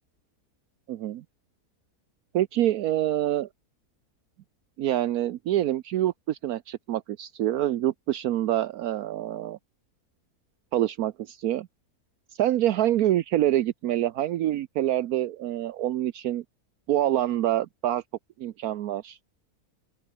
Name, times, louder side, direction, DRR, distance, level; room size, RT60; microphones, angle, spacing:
voice 1, 0.9-1.2 2.3-3.5 4.8-9.6 10.7-11.7 12.4-16.4 16.9-18.0 18.4-19.2, right 13 dB, 75° right, 1.1 m, -26 dB
open air
omnidirectional pair, 1.6 m